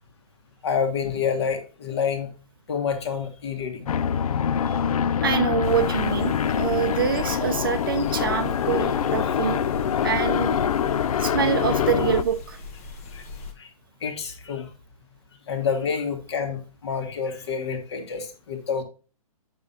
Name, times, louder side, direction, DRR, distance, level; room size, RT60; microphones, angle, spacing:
voice 1, 0.6-2.3 2.7-3.9 9.2-9.3 10.0-10.1 13.1-13.2 13.6-13.7 14.0-14.7 15.5-18.8, left 6 dB, 45° left, 6 dB, 1.6 m, -28 dB
sound 1, 3.9-12.2, left 8 dB, 70° left, 0.5 m, -24 dB
voice 2, 5.2-9.6 10.0-10.6 11.2-12.6, right 7 dB, 35° right, 9 dB, 0.6 m, -25 dB
sound 2, 5.6-13.5, left 3 dB, 20° left, 0.7 m, -40 dB
8.6 x 5.4 x 2.8 m, 0.35 s
hypercardioid pair, 175°, 19 cm